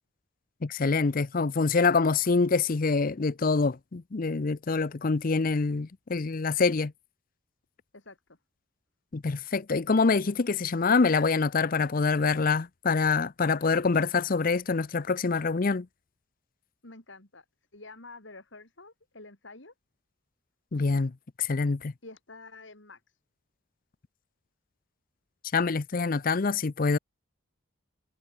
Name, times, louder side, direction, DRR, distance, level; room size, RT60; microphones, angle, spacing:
voice 1, 0.6-6.9 9.1-15.9 20.7-21.9 25.5-27.0, left 4 dB, 45° left, 0.6 m, -25 dB
voice 2, 16.8-17.5 17.7-19.7 22.0-23.0, left 3 dB, 65° left, 3.4 m, -48 dB
head